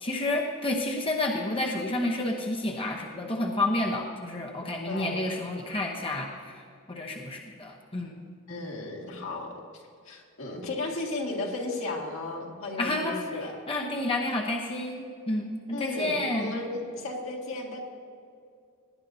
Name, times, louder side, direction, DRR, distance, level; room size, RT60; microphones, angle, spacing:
voice 1, 0.0-6.6 6.9-8.1 12.8-13.2 13.7-16.5, left 2 dB, 25° left, 0 dB, 0.9 m, -30 dB
voice 2, 4.8-5.2 8.5-13.6 15.7-17.8, left 2 dB, 75° left, -1 dB, 2.0 m, -35 dB
18.0 x 10.5 x 2.8 m, 2.4 s
head